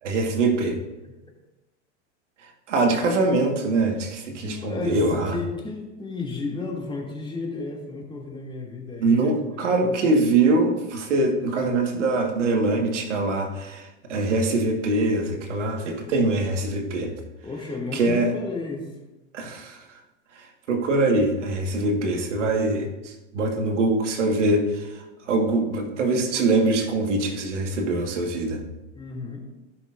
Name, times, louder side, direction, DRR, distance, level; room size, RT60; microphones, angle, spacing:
voice 1, 0.0-0.8 2.4-5.4 9.0-17.1 17.9-18.3 19.3-20.0 20.3-28.6, right 2 dB, 90° right, 3 dB, 1.8 m, -23 dB
voice 2, 4.4-10.0 17.4-19.0 28.9-29.5, left 3 dB, 15° left, -2 dB, 2.6 m, -33 dB
17.0 x 6.1 x 2.6 m, 1.1 s
hypercardioid pair, 110°, 35 cm